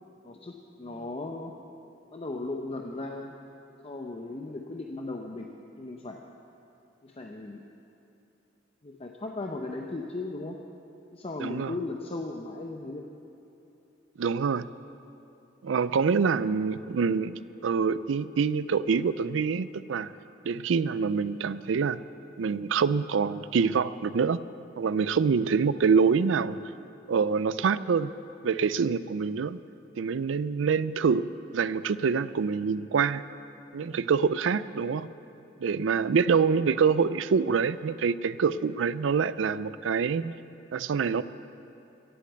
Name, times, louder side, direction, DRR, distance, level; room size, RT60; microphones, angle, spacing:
voice 1, 0.2-1.6 2.1-3.3 3.8-5.5 5.8-6.2 7.0-7.6 8.8-10.6 11.1-13.1, left 2 dB, 30° left, 1 dB, 0.7 m, -37 dB
voice 2, 11.4-11.7 14.2-14.7 15.6-20.1 20.5-22.0 22.4-24.4 24.8-26.6 27.1-28.1 28.4-29.6 30.0-33.2 33.7-35.1 35.6-40.4 40.7-41.2, right 5 dB, 85° right, 16 dB, 0.4 m, -26 dB
16.0 x 8.4 x 8.0 m, 2.9 s
head